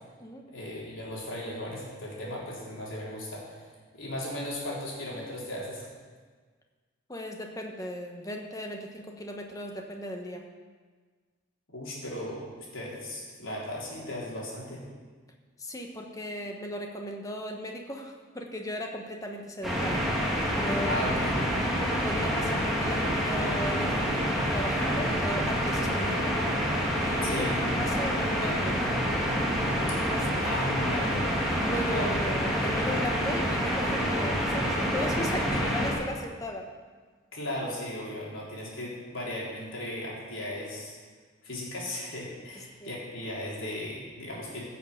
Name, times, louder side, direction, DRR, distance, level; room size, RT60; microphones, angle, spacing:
voice 1, 0.5-5.9 11.7-14.8 20.9-21.6 27.2-27.5 30.0-30.1 30.4-31.3 31.9-32.1 37.3-41.0 41.4-44.8, left 1 dB, 70° left, -4 dB, 3.8 m, -36 dB
voice 2, 7.1-10.4 15.6-20.0 20.6-21.0 22.0-26.4 27.0-28.8 30.1-30.3 31.5-36.7 42.5-42.9, left 1 dB, 15° left, 2 dB, 1.2 m, -36 dB
sound 1, 19.6-35.9, equal, ahead, 2.1 m, -27 dB
15.5 x 6.9 x 6.6 m, 1.5 s
head